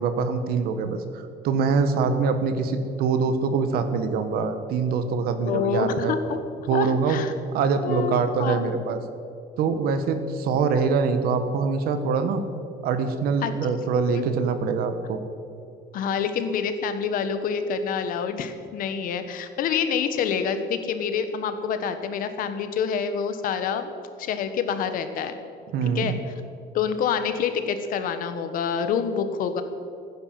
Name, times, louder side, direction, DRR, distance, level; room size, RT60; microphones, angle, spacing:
voice 1, 0.0-6.2 6.7-7.2 7.5-9.0 9.6-12.4 12.8-15.2 25.7-26.2, right 5 dB, 65° right, 9 dB, 1.4 m, -24 dB
voice 2, 5.5-6.4 6.7-7.3 7.8-8.7 13.4-13.5 14.1-14.3 15.9-23.9 24.2-25.3 25.8-26.2 26.7-29.6, left 7 dB, 55° left, 9 dB, 1.2 m, -27 dB
15.5 x 10.0 x 7.7 m, 2.5 s
cardioid pair, 170°, 17 cm